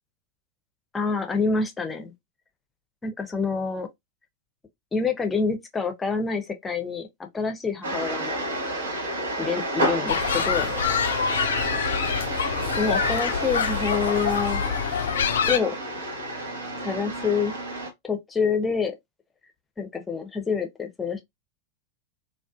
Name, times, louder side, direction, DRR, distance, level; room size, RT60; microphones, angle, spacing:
voice 1, 0.9-2.1 3.0-3.9 4.9-8.4 9.4-10.7 12.8-14.6 15.5-15.8 16.8-17.5 18.0-18.9 19.8-21.2, left 5 dB, 15° left, 0.6 m, -27 dB
sound 1, 7.8-17.9, right 1 dB, 65° right, 0.8 m, -30 dB
sound 2, 10.1-15.6, left 7 dB, 65° left, 0.3 m, -26 dB
2.4 x 2.4 x 2.2 m
figure-of-eight pair, 90°, 0 cm